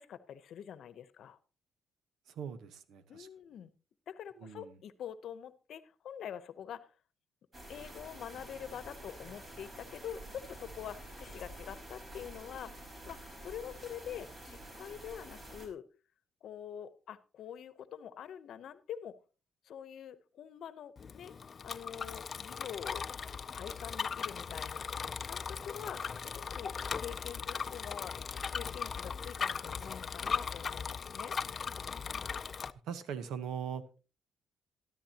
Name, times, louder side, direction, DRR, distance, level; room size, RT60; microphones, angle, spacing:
voice 1, 0.0-1.4 3.1-3.7 4.1-6.9 7.7-12.8 13.1-15.9 16.4-19.1 19.6-21.3 21.6-23.1 23.5-24.9 25.2-28.1 28.5-31.4, left 9 dB, 70° left, 14 dB, 0.9 m, -45 dB
voice 2, 2.3-3.3 4.4-4.8 32.8-33.9, right 7 dB, 80° right, 12 dB, 1.1 m, -41 dB
sound 1, 7.5-15.7, right 1 dB, 35° right, 4.6 m, -49 dB
Bicycle, 21.0-32.7, left 6 dB, 40° left, 0.5 m, -38 dB
13.0 x 13.0 x 2.9 m, 0.34 s
cardioid pair, 90°, 0 cm